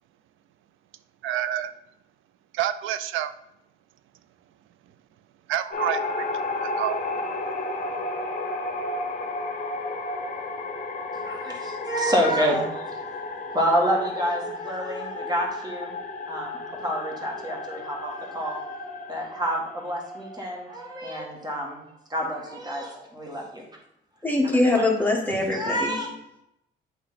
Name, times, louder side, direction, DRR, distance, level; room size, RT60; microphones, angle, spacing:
voice 1, 1.2-1.7 2.5-3.3 5.5-6.3 6.6-7.0, right 11 dB, 85° right, 13 dB, 0.5 m, -28 dB
sound 1, 5.7-21.6, left 2 dB, 40° left, 1.0 m, -33 dB
voice 2, 11.1-13.0 13.5-16.0 16.3-21.8 22.1-23.7 24.8-24.9 25.5-26.1, equal, 20° right, -1 dB, 1.9 m, -28 dB
voice 3, 24.2-25.9, left 2 dB, 10° left, -1 dB, 1.5 m, -22 dB
8.4 x 3.0 x 4.1 m, 0.81 s
cardioid pair, 90°, 20 cm